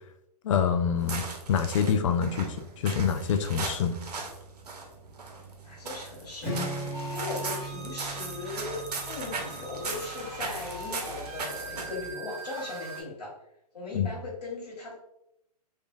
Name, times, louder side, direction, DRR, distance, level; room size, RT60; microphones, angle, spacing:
voice 1, 0.4-1.2 1.5-3.9 13.9-14.1, left 7 dB, 50° left, 7 dB, 0.4 m, -26 dB
sound 1, 1.0-12.1, right 3 dB, 75° right, 0.7 m, -39 dB
voice 2, 5.6-6.6 7.1-13.3 13.7-14.9, left 3 dB, 80° left, -5 dB, 1.2 m, -38 dB
Strum, 6.4-10.5, right 1 dB, 5° left, 1.3 m, -38 dB
sound 2, 6.9-13.0, right 2 dB, 15° right, 1.0 m, -42 dB
2.9 x 2.4 x 2.4 m, 0.80 s
hypercardioid pair, 125°, 20 cm